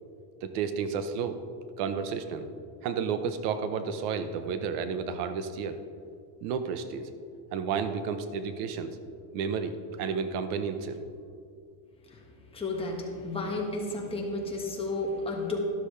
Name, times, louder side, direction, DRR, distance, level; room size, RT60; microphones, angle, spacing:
voice 1, 0.4-1.4 1.8-2.5 2.8-5.8 6.4-7.1 7.5-9.0 9.3-11.0, right 6 dB, 85° right, 10 dB, 1.0 m, -31 dB
voice 2, 12.0-15.6, left 2 dB, 10° left, -1 dB, 1.3 m, -33 dB
12.5 x 12.5 x 3.3 m, 2.3 s
cardioid pair, 170°, 44 cm